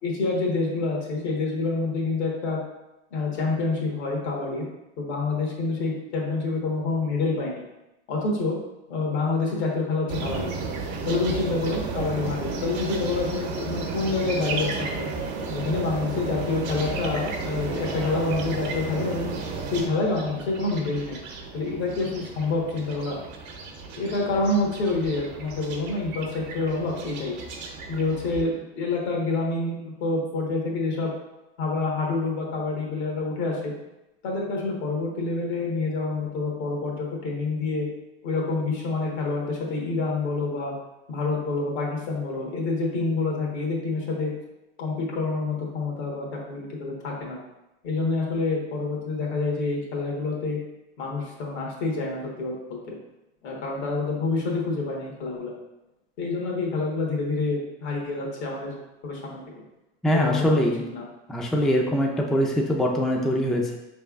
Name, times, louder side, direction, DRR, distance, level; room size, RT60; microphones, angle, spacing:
voice 1, 0.0-2.6 3.1-4.7 5.0-7.6 8.1-8.6 8.9-10.5 11.1-15.1 15.5-19.3 19.7-21.2 21.5-23.2 24.0-27.4 27.9-31.1 31.6-33.7 34.2-37.9 38.2-40.7 41.1-44.3 44.8-47.4 47.8-50.6 51.0-53.0 53.4-55.5 56.2-58.7 59.0-59.4 60.1-61.0, left 3 dB, 75° left, -1 dB, 1.4 m, -27 dB
sound 1, 10.1-28.4, right 4 dB, 65° right, 0.9 m, -33 dB
voice 2, 60.0-60.8 61.3-63.8, equal, ahead, 0 dB, 0.4 m, -23 dB
4.9 x 3.4 x 2.4 m, 0.95 s
hypercardioid pair, 100°, 32 cm